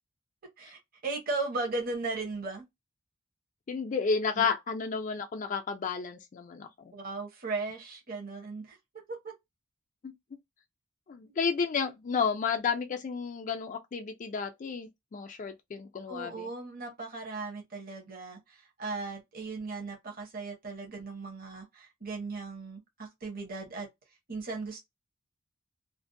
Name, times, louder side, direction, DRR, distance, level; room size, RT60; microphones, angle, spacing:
voice 1, 0.6-2.6 4.4-4.5 6.9-8.8 9.1-9.3 16.1-23.9 24.3-24.8, right 3 dB, 45° right, 0.8 m, -37 dB
voice 2, 3.7-6.9 10.0-10.1 11.1-16.5, left 5 dB, 40° left, 0.3 m, -32 dB
2.5 x 2.0 x 2.5 m
head